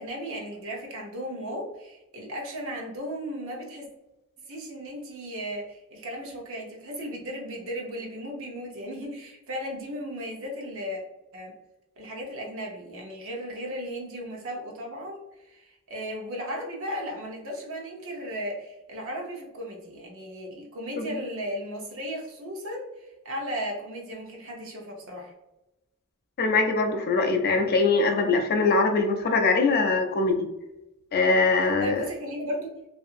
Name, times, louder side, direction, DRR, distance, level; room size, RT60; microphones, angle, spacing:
voice 1, 0.0-3.9 4.5-11.0 11.3-11.5 12.0-25.3 31.5-32.8, equal, 65° right, 0 dB, 0.8 m, -36 dB
voice 2, 26.4-30.5 31.1-32.1, left 3 dB, 45° left, 5 dB, 0.4 m, -22 dB
2.7 x 2.6 x 2.4 m, 0.95 s
head